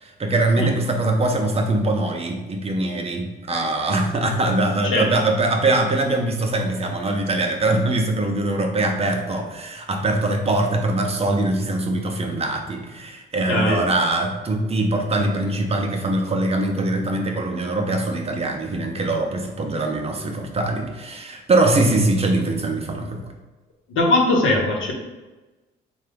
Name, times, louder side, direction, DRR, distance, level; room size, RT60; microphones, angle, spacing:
voice 1, 0.0-23.3, right 2 dB, 30° right, 3 dB, 0.6 m, -22 dB
voice 2, 13.5-13.8 23.9-24.9, left 2 dB, 80° left, 0 dB, 0.8 m, -19 dB
3.5 x 2.2 x 3.4 m, 1.2 s
cardioid pair, 90°, 20 cm